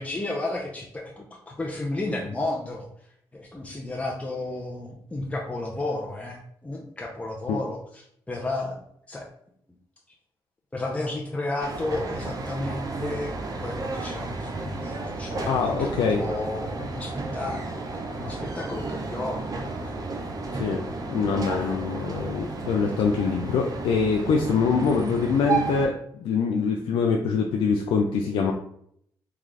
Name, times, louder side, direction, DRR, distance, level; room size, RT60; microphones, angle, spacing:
voice 1, 0.0-2.9 3.3-8.8 9.1-9.3 10.7-17.9 18.2-20.0 21.6-21.8, left 2 dB, 15° left, -1 dB, 0.6 m, -33 dB
sound 1, 11.6-25.9, right 3 dB, 45° right, 0.6 m, -33 dB
voice 2, 15.4-16.2 20.5-25.9 26.2-28.5, left 5 dB, 85° left, 2 dB, 0.4 m, -24 dB
3.6 x 2.4 x 3.2 m, 0.69 s
cardioid pair, 75°, 9 cm